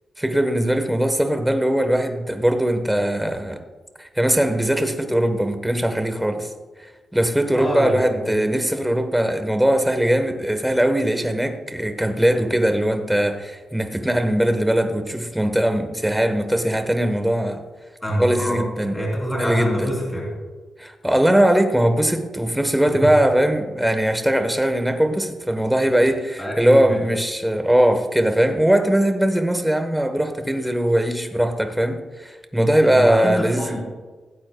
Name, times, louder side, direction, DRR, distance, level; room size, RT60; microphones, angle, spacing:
voice 1, 0.2-3.6 4.0-6.5 6.8-17.6 18.2-19.0 19.4-19.9 20.8-33.8, right 1 dB, 5° right, 1.1 m, -20 dB
voice 2, 7.5-8.3 18.0-18.6 18.9-20.3 22.8-23.1 26.4-27.0 32.8-33.8, equal, 10° left, 3.4 m, -26 dB
17.0 x 15.5 x 2.3 m
wide cardioid pair, 155°, 0 cm